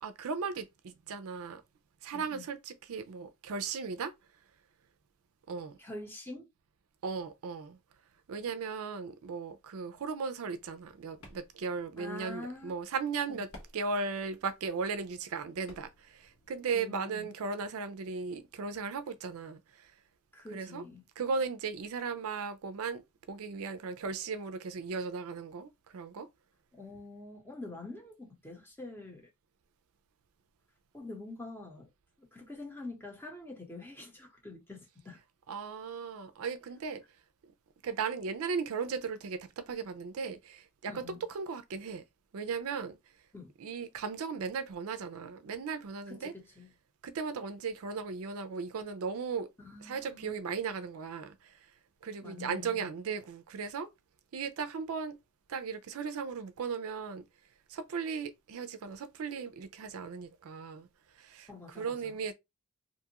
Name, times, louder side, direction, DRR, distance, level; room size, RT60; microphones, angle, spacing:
voice 1, 0.0-1.6 2.0-4.1 5.5-5.8 7.0-7.8 8.3-13.5 13.7-19.9 20.5-20.8 21.2-23.0 23.3-26.3 35.5-37.0 37.8-42.0 42.3-43.0 43.6-46.3 47.0-49.5 49.8-51.6 52.0-53.9 54.3-55.2 55.5-57.2 57.7-60.9 61.1-62.3, right 5 dB, 65° right, 0.4 m, -37 dB
voice 2, 2.1-2.5 5.8-6.5 12.0-12.7 13.3-13.4 16.7-17.3 20.3-21.0 26.7-29.3 30.9-31.9 32.2-35.2 40.9-41.2 43.3-43.5 46.1-46.7 49.6-50.3 52.2-52.9 61.5-62.2, left 2 dB, 10° left, 0.9 m, -46 dB
sound 1, 10.6-16.5, left 1 dB, 70° left, 1.1 m, -58 dB
2.6 x 2.3 x 2.8 m
head